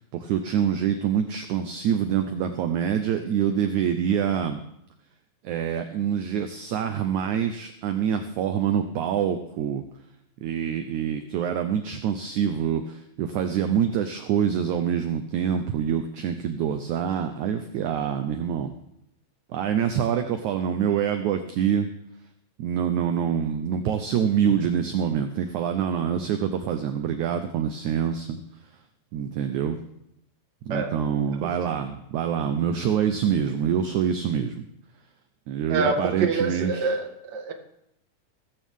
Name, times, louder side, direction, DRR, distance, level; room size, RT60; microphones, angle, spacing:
voice 1, 0.1-4.6 5.4-9.8 10.4-18.7 19.5-21.9 22.6-28.4 29.1-29.8 30.7-34.7 35.5-36.9, right 8 dB, 75° right, 7 dB, 1.8 m, -26 dB
voice 2, 30.7-31.0 31.4-31.5 35.7-37.5, right 4 dB, 40° right, 4 dB, 1.6 m, -26 dB
17.0 x 15.0 x 3.7 m, 0.78 s
omnidirectional pair, 4.4 m